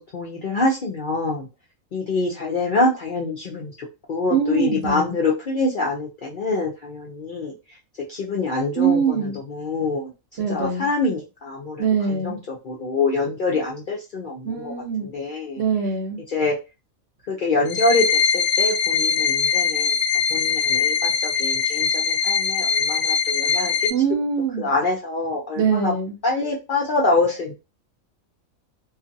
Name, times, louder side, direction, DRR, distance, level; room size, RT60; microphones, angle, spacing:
voice 1, 0.1-1.5 1.9-7.5 8.1-10.1 10.5-14.7 15.0-15.6 16.3-16.6 17.3-20.0 20.3-23.7 24.6-25.9 26.2-27.5, left 3 dB, 55° left, -3 dB, 0.6 m, -25 dB
voice 2, 4.3-5.1 8.8-9.4 10.4-10.9 11.8-12.4 14.4-15.1 15.6-16.2 23.9-24.7 25.6-26.1, right 6 dB, 55° right, 2 dB, 0.8 m, -23 dB
sound 1, 17.7-23.9, left 6 dB, 75° left, 0.9 m, -21 dB
2.6 x 2.4 x 2.6 m, 0.27 s
omnidirectional pair, 1.4 m